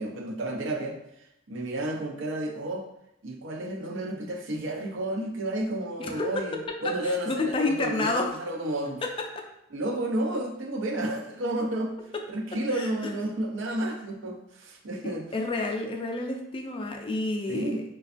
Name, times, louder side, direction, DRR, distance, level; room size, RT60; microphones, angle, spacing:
voice 1, 0.0-2.9 3.2-9.0 9.7-11.9 12.3-15.3 17.5-17.8, right 1 dB, 85° right, 2 dB, 0.5 m, -31 dB
voice 2, 6.0-6.4 7.0-8.3 9.0-9.5 12.7-12.9 15.0-17.8, left 2 dB, 30° left, 3 dB, 0.3 m, -30 dB
4.2 x 2.2 x 2.4 m, 0.82 s
head